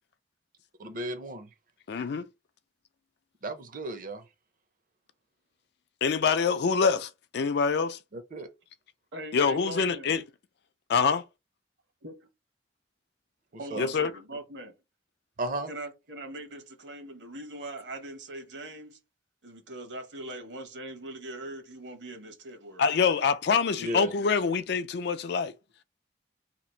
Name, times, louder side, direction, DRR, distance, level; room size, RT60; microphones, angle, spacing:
voice 1, 0.8-1.5 3.4-4.2 8.1-8.5 13.7-13.8 15.4-15.7 23.8-24.1, right 2 dB, 50° right, 0.6 m, -34 dB
voice 2, 1.9-2.3 6.0-8.0 9.3-10.2 10.9-11.2 13.8-14.1 22.8-25.5, left 5 dB, 65° left, 0.4 m, -25 dB
voice 3, 9.1-10.1 12.0-12.3 13.6-14.7 15.7-19.0 19.4-22.8, right 1 dB, 75° right, 1.1 m, -41 dB
2.9 x 2.5 x 4.3 m
head